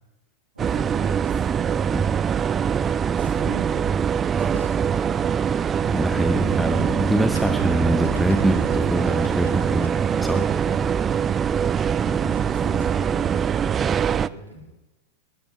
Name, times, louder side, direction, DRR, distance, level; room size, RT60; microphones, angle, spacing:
voice 1, 0.5-2.3 3.1-5.3 12.0-14.7, right 1 dB, 80° right, 0 dB, 5.2 m, -41 dB
sound 1, 0.6-14.3, right 7 dB, 25° right, 0.4 m, -23 dB
sound 2, 4.3-10.9, left 2 dB, 80° left, 2.1 m, -42 dB
voice 2, 5.9-10.5, right 1 dB, 5° right, 9 dB, 0.8 m, -24 dB
sound 3, 6.3-10.6, left 8 dB, 50° left, 1.5 m, -36 dB
22.0 x 17.0 x 3.1 m, 1.0 s
figure-of-eight pair, 90°, 0 cm